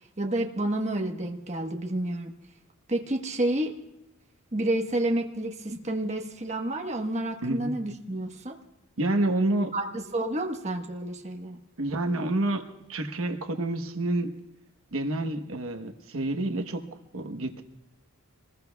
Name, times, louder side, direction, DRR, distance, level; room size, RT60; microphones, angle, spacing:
voice 1, 0.2-2.3 2.9-3.8 4.5-8.6 9.7-11.6, right 1 dB, 30° right, 1 dB, 1.2 m, -29 dB
voice 2, 9.0-9.7 11.8-12.6 12.9-14.3 14.9-16.8 17.1-17.6, right 2 dB, 70° right, 5 dB, 1.1 m, -28 dB
25.0 x 20.5 x 2.3 m, 0.94 s
head